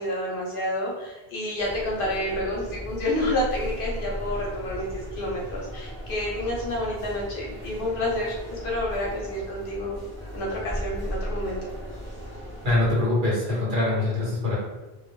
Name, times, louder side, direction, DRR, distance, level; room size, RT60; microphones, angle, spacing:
voice 1, 0.0-8.3 8.6-10.0 10.3-11.6, left 1 dB, 65° left, -2 dB, 0.7 m, -29 dB
sound 1, 1.6-12.9, equal, 20° right, 0.6 m, -36 dB
voice 2, 12.6-14.6, left 2 dB, 55° right, -6 dB, 1.1 m, -23 dB
2.1 x 2.0 x 3.0 m, 1.1 s
omnidirectional pair, 1.0 m